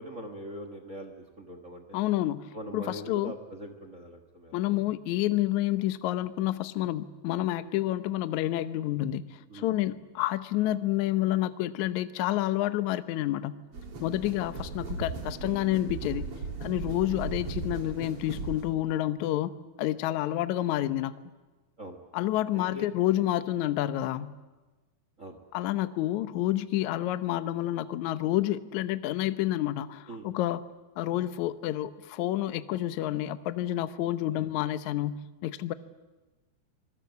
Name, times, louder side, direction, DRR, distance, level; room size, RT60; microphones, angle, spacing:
voice 1, 0.0-1.8 2.5-4.7 9.5-9.7 21.8-22.0 22.5-22.9 25.2-25.4 30.1-30.3 34.3-34.5, right 1 dB, 80° right, 7 dB, 0.7 m, -42 dB
voice 2, 1.9-3.3 4.5-13.6 14.0-16.3 16.6-19.5 19.8-21.2 22.1-24.3 25.5-30.6 31.0-35.7, left 14 dB, 70° left, 11 dB, 1.8 m, -29 dB
sound 1, 13.7-18.7, right 4 dB, 40° right, 3.5 m, -37 dB
26.0 x 20.5 x 8.2 m, 1.2 s
omnidirectional pair, 4.3 m